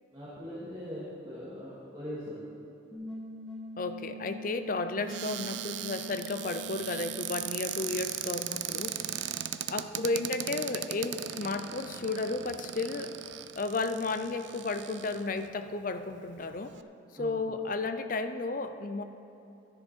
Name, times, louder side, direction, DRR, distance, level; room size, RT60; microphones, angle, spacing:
voice 1, 0.1-2.4 17.1-17.3, equal, 25° right, -10 dB, 2.4 m, -41 dB
sound 1, 2.9-7.9, equal, ahead, 2.3 m, -44 dB
voice 2, 3.8-9.1 9.7-13.1 13.6-16.7 17.1-19.0, left 3 dB, 45° left, 9 dB, 0.5 m, -33 dB
Cupboard open or close, 5.1-15.5 16.1-16.2 16.5-16.8, right 11 dB, 65° right, 0.4 m, -38 dB
13.5 x 10.5 x 4.4 m, 2.9 s
head